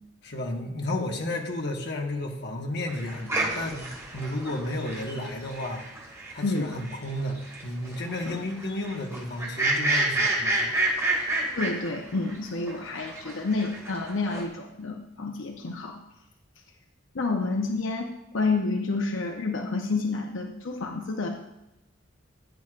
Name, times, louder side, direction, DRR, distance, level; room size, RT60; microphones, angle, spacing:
voice 1, 0.2-5.8 6.3-7.4 7.6-10.7, left 1 dB, 60° left, 1 dB, 1.4 m, -32 dB
sound 1, 2.9-12.3 12.7-14.4, right 2 dB, 15° right, 2.2 m, -29 dB
voice 2, 11.6-16.0 17.1-21.3, left 3 dB, 85° left, 3 dB, 0.8 m, -29 dB
15.5 x 9.5 x 2.5 m, 0.93 s
head